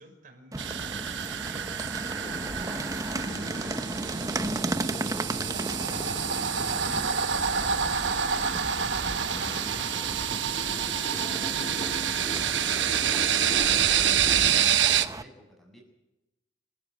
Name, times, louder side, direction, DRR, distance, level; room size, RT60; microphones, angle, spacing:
voice 1, 0.0-4.7, right 1 dB, 50° right, 4 dB, 5.9 m, -53 dB
sound 1, 0.5-15.2, right 2 dB, 20° right, 0.8 m, -36 dB
sound 2, 0.6-15.1, right 9 dB, 80° right, 1.0 m, -27 dB
sound 3, 2.2-14.7, left 1 dB, 30° left, 2.7 m, -39 dB
voice 2, 6.7-15.8, equal, ahead, 1 dB, 7.2 m, -51 dB
29.5 x 14.5 x 8.2 m, 0.98 s
head